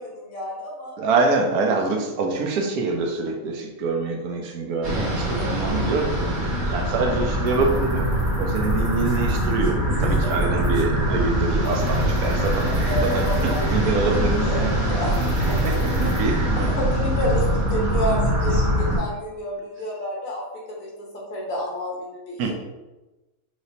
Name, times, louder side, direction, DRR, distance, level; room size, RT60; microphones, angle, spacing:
voice 1, 0.0-1.0 5.4-5.6 10.0-10.3 12.8-14.2 14.4-15.2 15.4-22.5, left 1 dB, 65° left, -3 dB, 1.5 m, -30 dB
voice 2, 1.0-8.1 8.4-14.7 15.5-16.8 22.4-22.5, right 3 dB, 80° right, 2 dB, 1.2 m, -25 dB
sound 1, 4.8-19.0, right 1 dB, 55° right, 1.7 m, -23 dB
4.9 x 3.2 x 2.7 m, 1.1 s
omnidirectional pair, 1.6 m